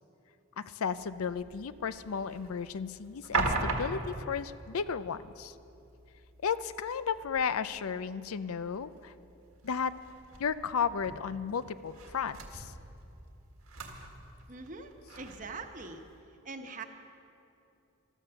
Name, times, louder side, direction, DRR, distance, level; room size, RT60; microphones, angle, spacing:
voice 1, 0.6-5.5 6.4-9.1 9.6-9.9 10.4-12.7, left 6 dB, 85° left, 15 dB, 0.5 m, -34 dB
sound 1, 0.9-16.2, right 3 dB, 90° right, 1.7 m, -41 dB
voice 2, 14.5-16.0 16.4-16.8, right 3 dB, 35° right, 5 dB, 1.0 m, -43 dB
14.5 x 13.0 x 6.8 m, 2.7 s
head